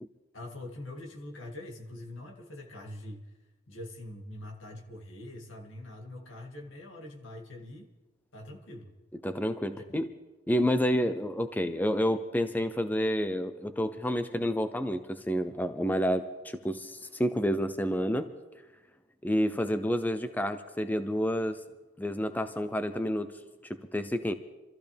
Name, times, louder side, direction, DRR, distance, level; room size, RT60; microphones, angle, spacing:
voice 1, 0.3-3.2 3.7-7.9 8.3-9.0, left 1 dB, 85° left, 1 dB, 2.4 m, -44 dB
voice 2, 9.2-10.1 10.5-18.3 19.2-21.6 22.0-23.3 23.7-24.3, equal, 10° left, 10 dB, 0.6 m, -29 dB
26.5 x 14.5 x 3.5 m, 1.1 s
head